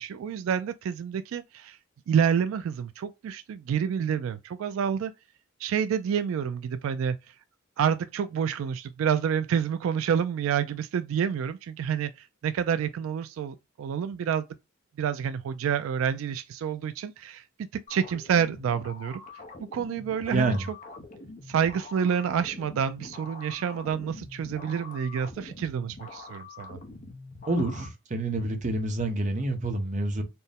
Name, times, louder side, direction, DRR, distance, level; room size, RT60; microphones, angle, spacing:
voice 1, 0.0-1.8 2.1-5.1 5.6-7.2 7.8-14.4 15.0-19.2 19.7-20.5 21.5-26.8, right 7 dB, 80° right, 0.3 m, -28 dB
sound 1, 17.9-27.9, left 3 dB, 40° left, 0.6 m, -45 dB
voice 2, 20.3-20.6 27.5-30.2, right 2 dB, 35° right, 0.8 m, -27 dB
4.2 x 2.0 x 3.5 m
head